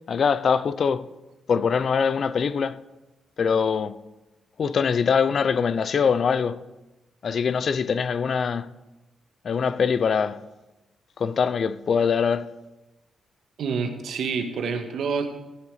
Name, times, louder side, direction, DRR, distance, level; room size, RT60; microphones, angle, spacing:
voice 1, 0.1-1.1 1.5-2.8 3.4-4.0 4.6-6.6 7.2-8.7 9.4-10.4 11.2-12.5, left 6 dB, 45° left, 0.5 m, -23 dB
voice 2, 13.6-15.3, right 5 dB, 70° right, 1.5 m, -27 dB
16.0 x 8.8 x 4.9 m
cardioid pair, 145°, 0 cm